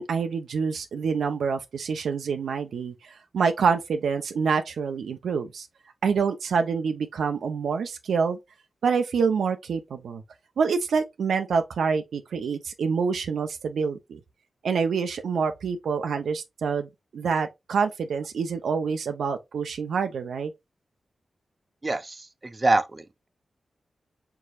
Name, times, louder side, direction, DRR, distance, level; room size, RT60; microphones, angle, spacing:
voice 1, 0.0-2.9 3.3-5.7 6.0-8.4 8.8-10.2 10.6-14.2 14.6-16.9 17.1-20.5, right 5 dB, 85° right, 0.5 m, -26 dB
voice 2, 21.8-23.3, right 2 dB, 35° right, 0.6 m, -26 dB
4.6 x 3.9 x 2.4 m
supercardioid pair, 40°, 0 cm